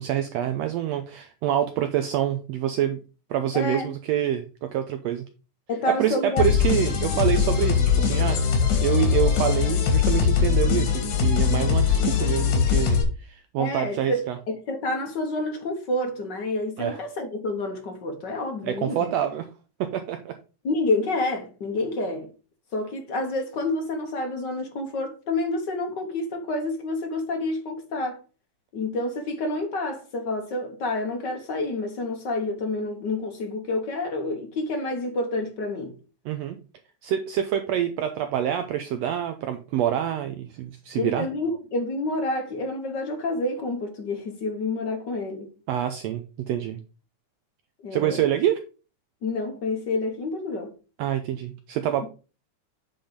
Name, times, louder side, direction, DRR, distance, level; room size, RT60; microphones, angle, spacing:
voice 1, 0.0-3.0 3.3-5.2 6.0-14.4 16.8-17.0 18.6-19.5 19.8-20.4 36.2-36.6 37.0-41.3 45.7-46.8 47.9-48.6 51.0-52.1, right 10 dB, 75° right, 1.6 m, -26 dB
voice 2, 3.5-3.9 5.7-6.5 13.6-19.1 20.6-22.3 22.7-28.2 28.7-35.9 41.0-45.5 47.8-48.4 49.2-50.7, left 2 dB, 55° left, 1.2 m, -28 dB
sound 1, 6.4-13.0, left 7 dB, 90° left, 3.1 m, -21 dB
8.6 x 3.9 x 5.1 m
omnidirectional pair, 3.4 m